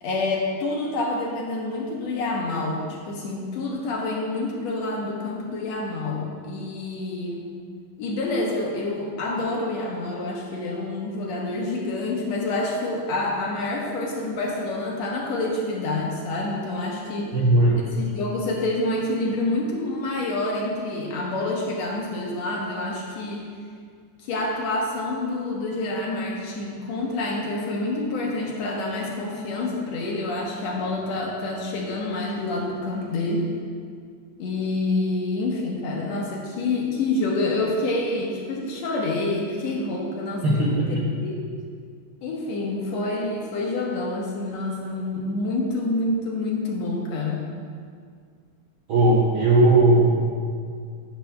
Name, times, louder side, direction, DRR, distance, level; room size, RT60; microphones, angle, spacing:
voice 1, 0.0-7.5 8.0-17.4 18.1-23.5 24.2-33.5 34.4-40.7 41.2-41.3 42.2-47.4, left 2 dB, 70° left, -2 dB, 2.0 m, -27 dB
voice 2, 17.3-17.8 40.4-41.0 48.9-50.3, right 2 dB, 65° right, -5 dB, 1.3 m, -18 dB
12.0 x 9.3 x 2.2 m, 2.1 s
omnidirectional pair, 3.4 m